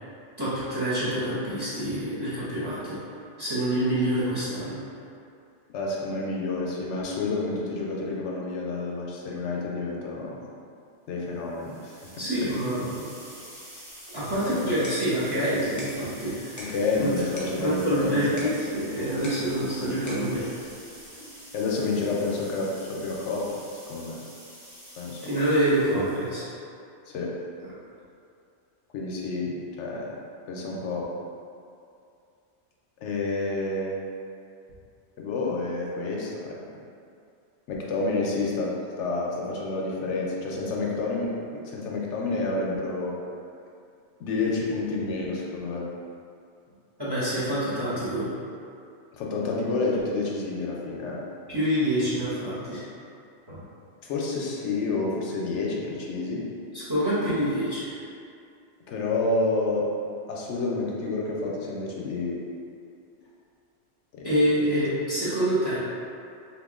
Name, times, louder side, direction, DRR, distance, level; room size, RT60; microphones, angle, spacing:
voice 1, 0.4-3.0 3.4-4.8 12.2-13.1 14.1-16.7 17.0-17.2 17.5-20.6 25.2-26.4 47.0-48.3 51.5-52.8 53.5-53.6 56.7-58.0 64.2-65.8, right 1 dB, 25° right, -12 dB, 0.8 m, -26 dB
voice 2, 5.7-10.4 11.1-12.1 12.4-12.5 14.5-14.9 16.6-18.5 21.5-23.5 23.9-24.2 25.0-25.2 27.1-27.3 28.9-30.2 30.5-31.1 33.0-34.0 35.2-36.6 37.7-41.3 41.6-43.1 44.2-45.8 49.1-51.2 54.0-56.4 58.9-59.9 60.3-62.4 64.2-64.3, left 3 dB, 80° left, -3 dB, 0.9 m, -29 dB
sound 1, 11.5-26.4, equal, 80° right, 1.5 m, -47 dB
sound 2, 14.5-21.5, equal, 25° left, 0.4 m, -46 dB
2.9 x 2.4 x 3.5 m, 2.4 s
omnidirectional pair, 1.2 m